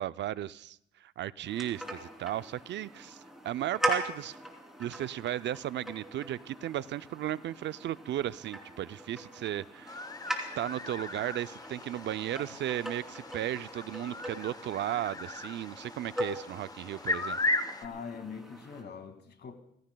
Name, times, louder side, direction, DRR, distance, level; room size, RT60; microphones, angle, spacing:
voice 1, 0.0-3.2 3.4-4.4 4.8-10.0 10.6-17.5, right 12 dB, 65° right, 16 dB, 0.5 m, -35 dB
sound 1, 1.4-18.8, right 1 dB, ahead, 3.2 m, -41 dB
sound 2, 9.9-17.9, left 2 dB, 20° left, 0.9 m, -37 dB
voice 2, 17.8-19.5, left 6 dB, 55° left, 6 dB, 2.2 m, -42 dB
29.5 x 16.0 x 2.3 m, 0.72 s
cardioid pair, 90°, 20 cm